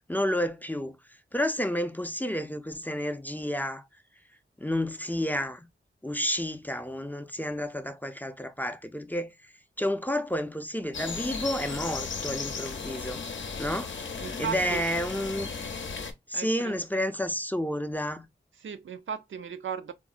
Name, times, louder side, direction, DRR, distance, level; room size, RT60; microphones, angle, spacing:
voice 1, 0.1-1.0 1.3-3.8 4.6-5.7 6.0-9.3 9.8-13.2 13.6-13.9 14.4-15.5 16.3-18.3, equal, 10° left, 0.4 m, -30 dB
sound 1, 10.9-16.1, left 5 dB, 70° left, 0.6 m, -35 dB
voice 2, 14.2-14.8 16.3-16.7 18.6-19.9, right 7 dB, 75° right, 0.4 m, -36 dB
3.7 x 2.0 x 2.3 m
cardioid pair, 45°, 20 cm